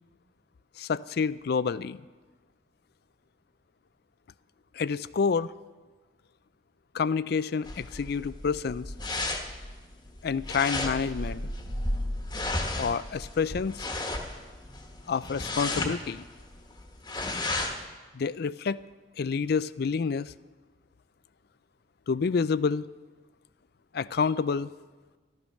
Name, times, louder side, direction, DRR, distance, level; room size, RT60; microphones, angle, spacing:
voice 1, 0.8-2.0 4.7-5.5 6.9-8.9 10.2-11.5 12.8-13.9 15.1-16.2 18.1-18.8 19.2-20.3 22.1-22.9 23.9-24.7, left 5 dB, 60° left, 18 dB, 0.4 m, -28 dB
sound 1, 7.6-17.9, left 2 dB, 25° left, 1.2 m, -34 dB
14.0 x 12.5 x 6.4 m, 1.3 s
head